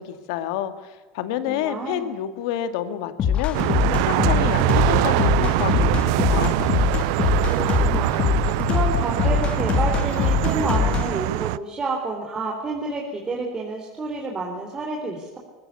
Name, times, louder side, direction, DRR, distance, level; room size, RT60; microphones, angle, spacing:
voice 1, 0.0-3.7 4.0-6.6, left 11 dB, 75° left, 10 dB, 2.1 m, -29 dB
voice 2, 1.5-2.1 7.5-15.4, right 3 dB, 25° right, -1 dB, 3.8 m, -29 dB
sound 1, 3.2-11.1, left 8 dB, 40° left, 2.3 m, -22 dB
sound 2, 3.5-11.6, right 19 dB, 70° right, 0.5 m, -23 dB
20.5 x 16.0 x 8.4 m, 1.3 s
supercardioid pair, 110°, 3 cm